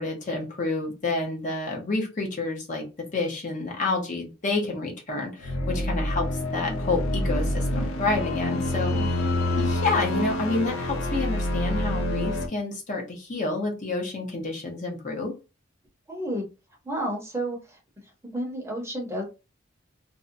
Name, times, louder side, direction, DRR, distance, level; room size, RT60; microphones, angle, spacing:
voice 1, 0.0-2.9 3.1-8.9 9.5-15.3, left 3 dB, 40° left, 1 dB, 0.7 m, -29 dB
sound 1, 5.4-12.5, left 1 dB, 80° left, 0.6 m, -27 dB
voice 2, 8.9-9.3 16.1-16.5 16.8-17.8 18.2-19.2, right 1 dB, 15° right, -1 dB, 0.7 m, -31 dB
2.6 x 2.2 x 2.5 m, 0.28 s
head